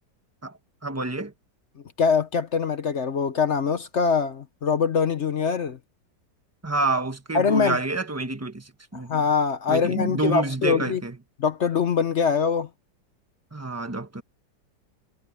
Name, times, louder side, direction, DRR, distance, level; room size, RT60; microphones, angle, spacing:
voice 1, 0.8-1.3 6.6-8.6 8.9-9.1 9.7-11.2 13.5-14.2, right 2 dB, 10° right, 1.1 m, -28 dB
voice 2, 2.0-5.8 7.3-7.8 9.1-11.0 11.4-12.7, left 6 dB, 50° left, 0.9 m, -23 dB
omnidirectional pair, 2.0 m